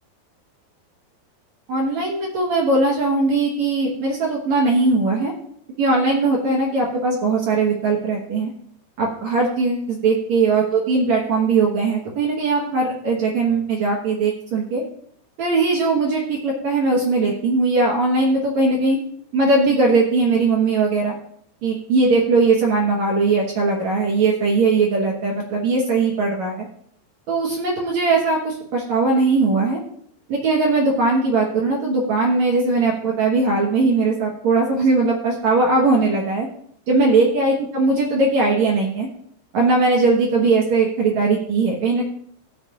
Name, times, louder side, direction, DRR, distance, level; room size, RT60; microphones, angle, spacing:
voice 1, 1.7-5.3 5.8-8.5 9.0-14.8 15.4-19.0 19.3-21.2 21.6-26.7 27.3-29.8 30.3-36.5 36.9-39.1 39.5-42.0, right 3 dB, 60° right, -2 dB, 2.0 m, -19 dB
20.0 x 7.0 x 2.5 m, 0.66 s
omnidirectional pair, 4.9 m